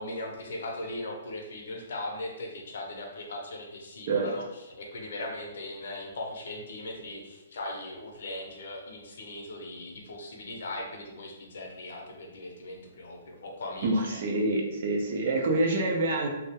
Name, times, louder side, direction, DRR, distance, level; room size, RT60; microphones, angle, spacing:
voice 1, 0.0-14.2, left 1 dB, 65° left, 0 dB, 0.6 m, -39 dB
voice 2, 13.8-16.3, right 2 dB, 50° right, 2 dB, 0.4 m, -26 dB
2.3 x 2.0 x 2.8 m, 0.99 s
hypercardioid pair, 165°, 0 cm